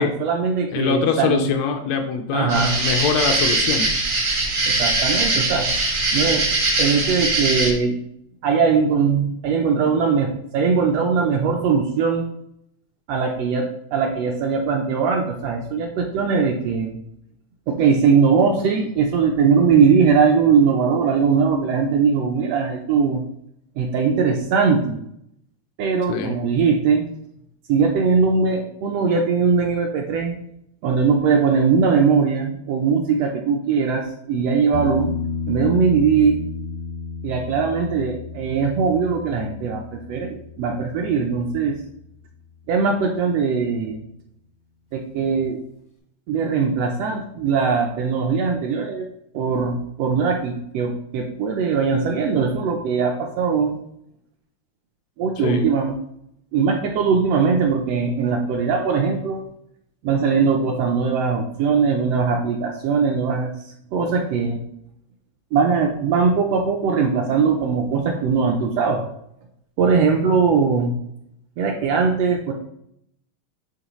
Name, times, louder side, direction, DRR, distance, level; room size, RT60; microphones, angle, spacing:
voice 1, 0.0-1.5 2.3-2.7 4.7-5.7 6.1-6.5 6.8-7.9 8.4-12.2 13.1-17.0 17.7-23.2 23.8-25.0 25.8-27.0 27.7-30.4 30.8-35.1 35.5-36.4 37.2-41.8 42.7-44.0 44.9-45.6 46.3-49.1 49.3-53.7 55.2-55.9 56.5-59.4 60.0-64.6 65.5-69.0 69.8-70.9 71.6-72.5, right 5 dB, 75° right, 2 dB, 1.5 m, -20 dB
voice 2, 0.7-3.9 26.1-26.4 55.4-55.7, left 6 dB, 80° left, 5 dB, 1.7 m, -23 dB
sound 1, 2.5-7.7, right 2 dB, 55° right, 0.9 m, -21 dB
sound 2, 34.7-42.3 45.4-45.5, left 4 dB, 45° left, 0.6 m, -32 dB
9.5 x 3.4 x 3.0 m, 0.75 s
omnidirectional pair, 3.3 m